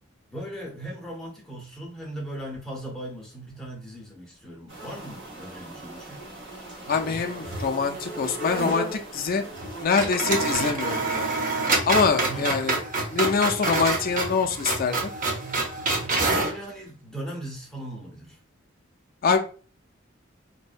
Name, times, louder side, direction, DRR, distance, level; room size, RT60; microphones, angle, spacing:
voice 1, 0.3-6.2 12.2-12.6 16.1-18.4, right 1 dB, 5° left, -3 dB, 0.6 m, -38 dB
sound 1, 4.7-9.8, right 1 dB, 60° right, 1.0 m, -37 dB
voice 2, 6.9-9.4 9.8-11.3 11.9-12.8 13.1-15.0 19.2-19.4, left 5 dB, 45° left, 5 dB, 0.4 m, -24 dB
sound 2, 6.9-7.7 7.9-8.0 9.5-9.7 10.0-16.6, right 3 dB, 40° right, 0.5 m, -27 dB
2.6 x 2.1 x 2.3 m, 0.39 s
head